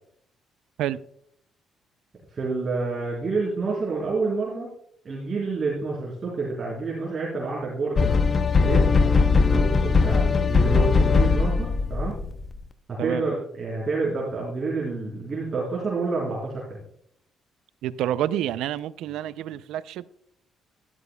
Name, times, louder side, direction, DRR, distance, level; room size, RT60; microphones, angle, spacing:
voice 1, 2.3-4.7 5.0-8.1 8.5-12.1 12.9-16.8, right 3 dB, 40° right, 3.6 m, -28 dB
sound 1, 8.0-12.5, left 4 dB, 40° left, 0.7 m, -20 dB
voice 2, 17.8-20.1, right 11 dB, 90° right, 0.4 m, -28 dB
12.5 x 12.0 x 2.2 m
cardioid pair, 90°, 0 cm